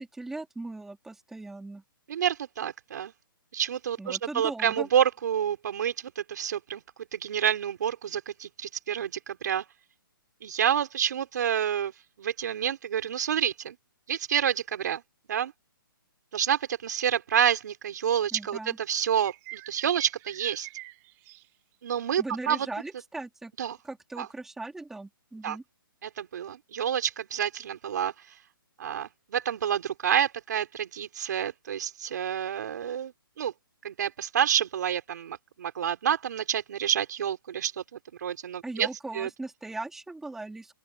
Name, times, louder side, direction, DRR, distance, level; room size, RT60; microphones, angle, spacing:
voice 1, 0.0-1.8 4.0-4.9 18.3-18.8 22.2-23.5 23.8-25.6 38.6-40.7, right 2 dB, 5° right, 3.2 m, -39 dB
voice 2, 2.1-3.1 3.5-6.8 7.1-9.6 10.4-11.9 12.2-13.8 14.1-15.0 15.3-15.5 16.3-20.7 21.8-22.7 23.6-23.8 24.2-24.3 25.4-25.6 26.0-28.1 28.8-33.5 33.8-37.7 38.2-38.9 39.1-39.3, right 9 dB, 50° right, 4.6 m, -28 dB
sound 1, 19.2-21.5 22.8-23.0, right 21 dB, 20° right, 3.1 m, -45 dB
open air
hypercardioid pair, 165°, 12 cm